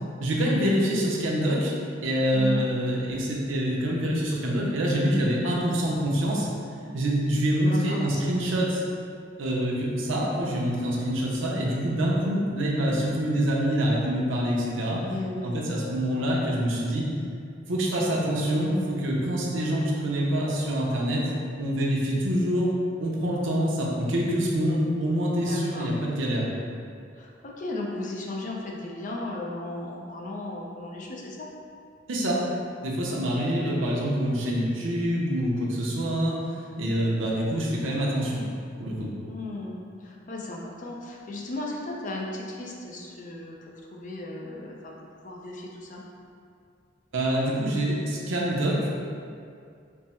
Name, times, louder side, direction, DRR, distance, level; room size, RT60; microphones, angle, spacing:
voice 1, 0.2-1.7 2.0-6.5 6.9-8.8 9.4-15.0 15.4-17.1 17.7-21.3 21.6-22.7 23.0-26.5 32.1-32.4 32.8-36.4 36.8-38.4 38.8-39.1 47.1-49.0, equal, 90° right, -3 dB, 0.7 m, -26 dB
voice 2, 2.3-2.7 7.6-8.2 15.0-15.7 19.6-20.0 25.3-25.9 27.1-31.5 33.1-33.5 39.3-43.5 43.9-44.9 45.2-46.0, left 2 dB, 45° left, -2 dB, 0.5 m, -36 dB
3.4 x 2.0 x 4.2 m, 2.4 s
head